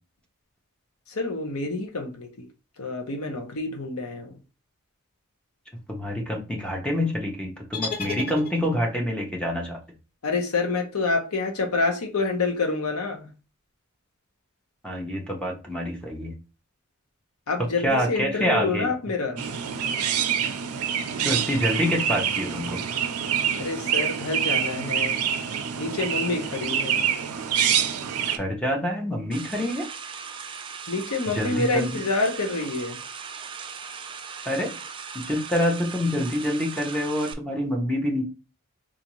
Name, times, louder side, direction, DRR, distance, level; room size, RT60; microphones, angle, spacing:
voice 1, 1.1-2.5 2.8-4.4 10.2-13.3 17.5-19.4 23.6-25.2 25.8-27.0 30.9-33.0, left 3 dB, 75° left, 0.8 m, -27 dB
voice 2, 5.9-9.8 14.8-16.3 17.8-18.9 21.2-22.8 28.4-29.9 31.3-31.9 34.5-34.7 35.2-38.2, equal, 5° left, 0.7 m, -26 dB
sound 1, 7.7-9.0, left 4 dB, 40° left, 1.0 m, -33 dB
Chirp tweet, 19.4-28.4, right 8 dB, 85° right, 0.5 m, -26 dB
sound 2, 29.3-37.3, right 6 dB, 25° right, 0.3 m, -38 dB
3.9 x 2.5 x 3.0 m
head